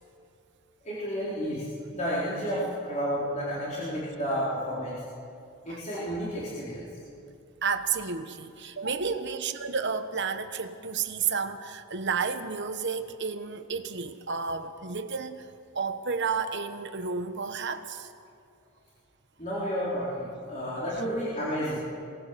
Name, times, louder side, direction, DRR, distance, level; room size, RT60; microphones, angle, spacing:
voice 1, 0.8-5.0 5.6-6.8 19.4-21.8, equal, 30° left, -8 dB, 4.2 m, -31 dB
voice 2, 7.6-15.5 15.7-18.1, right 5 dB, 50° right, 9 dB, 1.1 m, -31 dB
23.5 x 19.0 x 6.9 m, 2.5 s
head